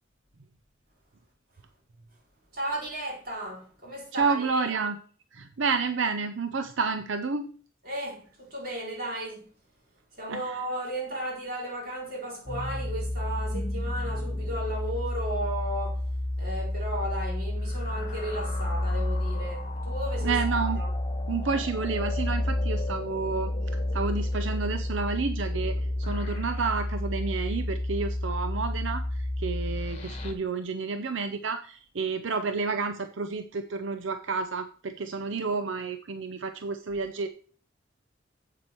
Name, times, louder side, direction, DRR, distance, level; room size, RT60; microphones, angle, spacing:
voice 1, 2.5-4.7 7.8-9.4 10.2-16.0 16.4-20.9, right 1 dB, 50° right, 4.4 m, -35 dB
voice 2, 4.1-5.0 5.3-7.5 10.3-10.6 20.2-20.8 21.3-23.5 23.9-37.3, right 4 dB, 85° right, 0.7 m, -30 dB
sound 1, 12.5-30.3, left 1 dB, 35° left, 1.3 m, -30 dB
8.1 x 7.4 x 4.5 m
head